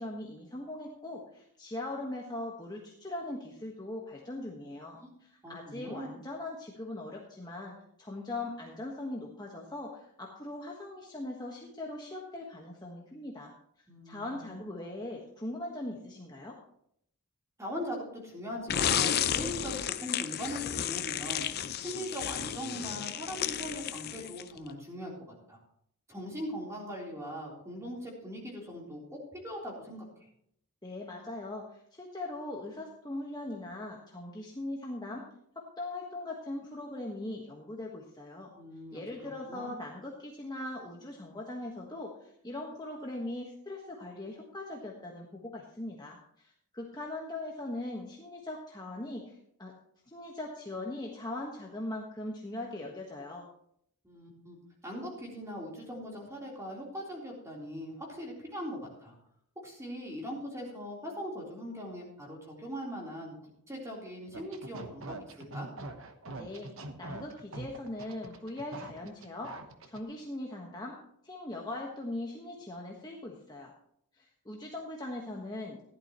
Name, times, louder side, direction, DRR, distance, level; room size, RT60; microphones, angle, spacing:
voice 1, 0.0-13.5 14.0-16.6 30.8-35.3 35.5-38.5 38.9-49.7 50.1-53.5 66.3-66.7 67.0-69.5 69.9-71.0 71.2-73.7 74.2-75.8, left 2 dB, 20° left, -2 dB, 1.4 m, -40 dB
voice 2, 5.0-6.1 13.9-14.6 17.6-25.6 26.1-30.1 38.6-39.8 54.0-54.6 54.8-59.1 59.6-63.4 63.7-65.2 65.5-65.7, equal, 15° right, -3 dB, 3.7 m, -40 dB
sound 1, 18.7-24.6, left 9 dB, 45° left, 0.5 m, -32 dB
sound 2, 64.3-70.0, right 2 dB, 60° right, 1.1 m, -43 dB
15.0 x 11.5 x 3.0 m, 0.69 s
head